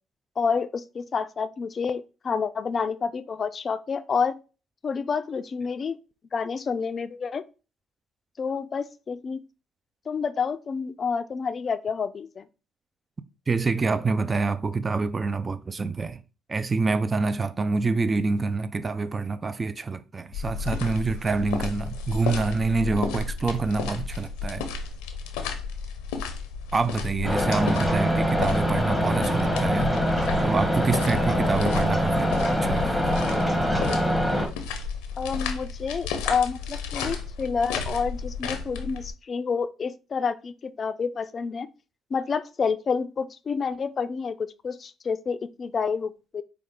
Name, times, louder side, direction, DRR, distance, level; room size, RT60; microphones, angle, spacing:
voice 1, 0.4-4.4 4.8-6.0 6.3-7.4 8.4-9.4 10.1-12.5 27.9-28.2 35.2-41.7 42.1-46.4, left 5 dB, 45° left, 0.4 m, -29 dB
voice 2, 13.5-16.2 16.5-24.7 26.7-29.9 30.4-32.3 32.6-33.1, right 4 dB, 30° right, 0.4 m, -26 dB
sound 1, 20.3-39.1, left 5 dB, 90° left, 0.6 m, -33 dB
sound 2, 27.2-34.5, equal, 10° right, 1.3 m, -24 dB
4.8 x 2.3 x 3.6 m
supercardioid pair, 65°, 0 cm